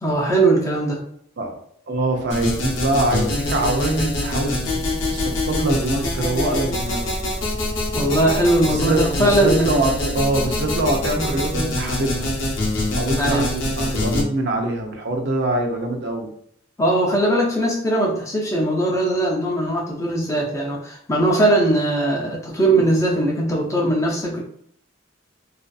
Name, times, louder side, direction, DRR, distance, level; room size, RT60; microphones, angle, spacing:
voice 1, 0.0-1.0 7.9-9.7 13.2-13.5 16.8-24.4, right 1 dB, 15° left, -2 dB, 0.5 m, -20 dB
voice 2, 1.9-7.1 8.6-12.3 12.9-16.3, right 2 dB, 60° right, 2 dB, 0.5 m, -24 dB
sound 1, 2.3-14.2, left 1 dB, 65° left, 0.6 m, -24 dB
2.5 x 2.4 x 2.2 m, 0.66 s
head